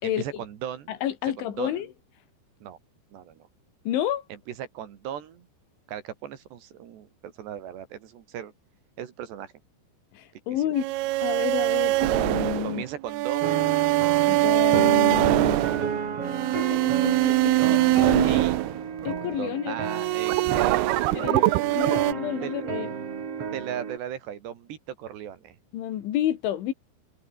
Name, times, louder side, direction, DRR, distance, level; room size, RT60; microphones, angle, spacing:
voice 1, 0.0-1.0 1.4-1.9 2.6-2.8 3.1-3.5 4.3-5.5 5.9-8.5 9.0-9.5 12.6-13.6 17.5-18.6 19.3-22.0 22.4-22.7 23.5-25.6, right 10 dB, 65° right, 4.1 m, -37 dB
voice 2, 0.9-1.9 3.9-4.2 10.1-10.8 11.2-12.8 14.3-15.6 16.2-16.3 16.6-17.6 17.8-18.4 19.1-19.8 21.1-21.5 21.7-22.9 25.7-26.7, left 11 dB, 80° left, 4.4 m, -30 dB
sound 1, 10.7-19.3 19.8-22.1, right 18 dB, 85° right, 2.3 m, -23 dB
sound 2, 13.4-24.0, right 6 dB, 40° right, 2.7 m, -32 dB
omnidirectional pair, 5.5 m